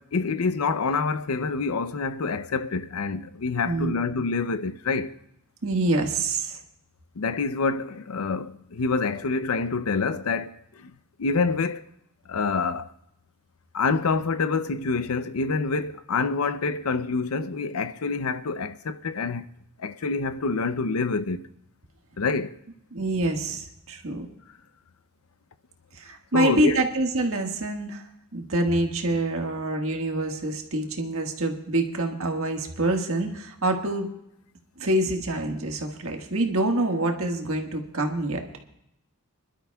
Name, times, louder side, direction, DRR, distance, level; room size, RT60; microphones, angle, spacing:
voice 1, 0.0-5.2 7.2-10.9 11.2-11.8 12.3-12.9 13.7-19.5 19.8-21.5 22.2-22.6 26.3-26.8, left 4 dB, 80° left, 0.6 m, -27 dB
voice 2, 3.6-4.1 5.6-6.6 22.9-24.3 25.9-28.0 28.3-34.1 34.8-38.4, right 2 dB, 70° right, 1.6 m, -26 dB
26.0 x 12.0 x 2.3 m
head